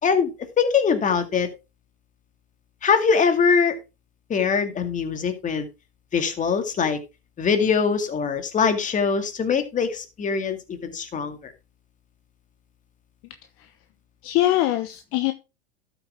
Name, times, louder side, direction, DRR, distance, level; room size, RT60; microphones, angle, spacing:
voice 1, 0.0-1.5 2.8-3.8 4.3-5.7 6.1-7.0 7.4-11.5, left 6 dB, 25° left, 2.2 m, -22 dB
voice 2, 14.2-15.3, left 15 dB, 45° left, 1.1 m, -23 dB
12.5 x 7.1 x 3.6 m
hypercardioid pair, 105°, 30 cm